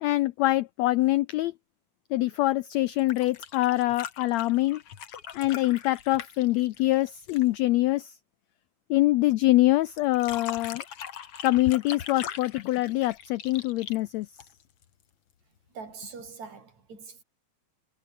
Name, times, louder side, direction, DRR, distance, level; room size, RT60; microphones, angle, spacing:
voice 1, 0.0-1.5 2.1-4.8 5.3-8.1 8.9-10.8 11.4-14.3, left 17 dB, 85° left, 1.5 m, -24 dB
sound 1, 2.9-7.6 10.0-14.8 16.3-16.4, left 9 dB, 50° left, 2.4 m, -41 dB
voice 2, 15.7-17.2, right 5 dB, 60° right, 5.7 m, -43 dB
omnidirectional pair, 3.7 m